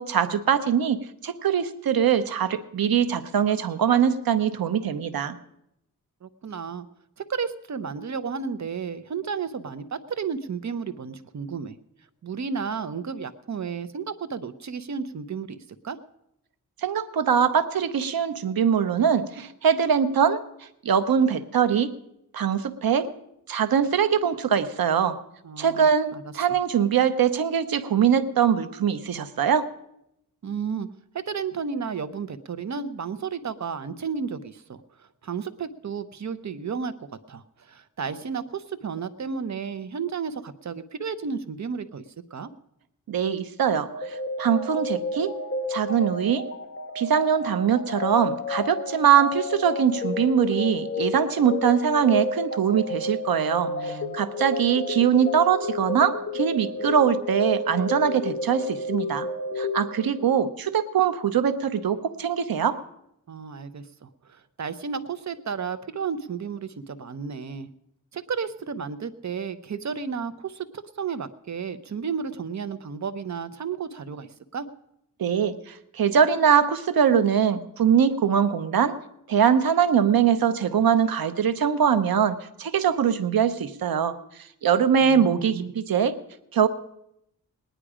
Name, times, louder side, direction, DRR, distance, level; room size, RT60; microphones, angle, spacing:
voice 1, 0.0-5.3 16.8-20.4 20.8-21.9 22.3-23.1 23.5-25.2 25.6-29.6 43.1-45.3 45.7-46.4 46.9-59.3 59.6-62.8 75.2-78.9 79.3-84.1 84.6-86.1 86.5-86.7, right 8 dB, 85° right, 10 dB, 0.9 m, -22 dB
voice 2, 6.2-6.9 7.2-11.8 12.2-16.0 25.4-26.3 30.4-30.9 31.1-42.0 42.3-42.5 53.4-54.2 63.3-67.7 68.1-70.7 71.0-74.7 85.0-85.8, right 6 dB, 55° right, 12 dB, 0.8 m, -33 dB
sound 1, 43.9-60.5, left 2 dB, 35° left, 1.5 m, -31 dB
19.0 x 10.0 x 5.0 m, 0.81 s
wide cardioid pair, 100°, 34 cm